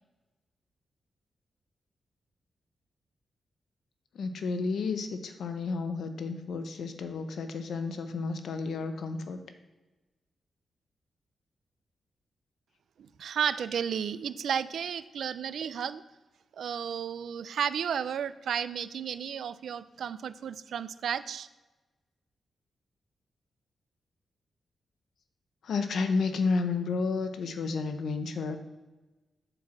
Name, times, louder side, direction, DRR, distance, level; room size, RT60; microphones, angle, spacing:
voice 1, 4.1-9.4 25.6-28.6, left 4 dB, 70° left, 8 dB, 0.9 m, -31 dB
voice 2, 13.2-16.0 16.6-21.5, right 8 dB, 75° right, 14 dB, 0.4 m, -33 dB
7.9 x 4.5 x 6.4 m, 1.2 s
wide cardioid pair, 145°, 0 cm